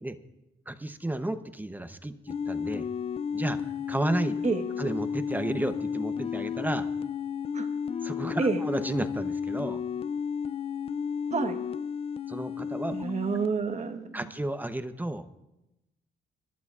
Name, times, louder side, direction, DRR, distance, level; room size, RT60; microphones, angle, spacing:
voice 1, 0.7-2.9 3.3-4.4 4.8-6.9 8.0-9.8 12.3-13.0 14.1-15.3, right 1 dB, 10° right, 10 dB, 0.8 m, -32 dB
sound 1, 2.3-13.5, left 7 dB, 30° left, 0.3 m, -33 dB
voice 2, 12.9-14.2, right 5 dB, 35° right, 7 dB, 1.2 m, -29 dB
25.5 x 11.5 x 2.4 m, 0.94 s
cardioid pair, 90°, 20 cm